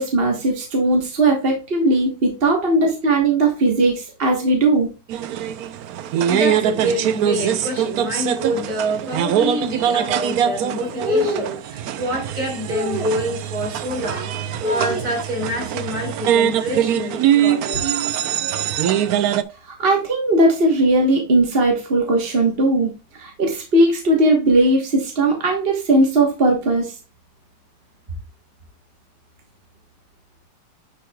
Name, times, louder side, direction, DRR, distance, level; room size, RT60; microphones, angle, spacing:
voice 1, 0.0-4.9 19.6-26.9, right 2 dB, 35° right, 1.3 m, -18 dB
sound 1, 5.1-19.4, right 10 dB, 70° right, 0.9 m, -22 dB
voice 2, 6.3-17.8, equal, 55° right, 4.7 m, -26 dB
10.0 x 4.6 x 2.3 m
omnidirectional pair, 2.0 m